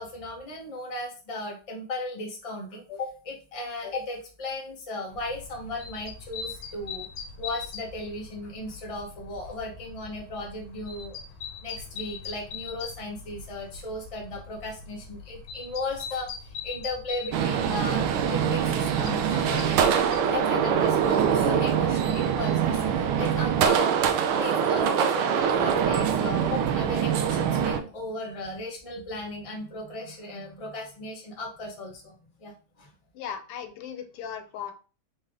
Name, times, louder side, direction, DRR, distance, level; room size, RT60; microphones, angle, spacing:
voice 1, 0.0-7.1 7.4-11.2 11.6-32.1 32.4-32.9, left 2 dB, 20° left, -2 dB, 0.9 m, -36 dB
sound 1, 5.1-22.6, left 6 dB, 70° left, 1.7 m, -42 dB
sound 2, 17.3-27.8, right 8 dB, 75° right, 1.4 m, -24 dB
voice 2, 33.1-34.7, left 8 dB, 85° left, 8 dB, 1.7 m, -37 dB
4.3 x 3.3 x 3.6 m, 0.36 s
omnidirectional pair, 2.4 m